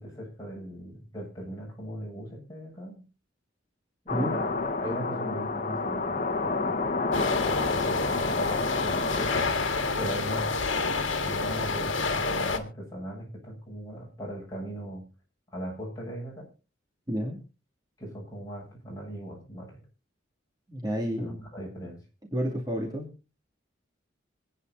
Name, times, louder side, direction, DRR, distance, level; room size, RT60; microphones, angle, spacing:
voice 1, 0.0-3.0 4.1-7.3 7.7-9.5 10.0-10.5 11.2-15.1 15.5-16.5 18.0-19.8 21.2-22.0, equal, 20° left, -3 dB, 7.2 m, -39 dB
sound 1, 4.1-9.4, left 3 dB, 45° left, 1.2 m, -30 dB
sound 2, 7.1-12.6, left 3 dB, 75° left, 1.7 m, -28 dB
voice 2, 17.1-17.4 20.7-21.5 22.3-23.1, equal, 20° right, -2 dB, 2.6 m, -30 dB
26.0 x 9.7 x 2.7 m, 0.31 s
head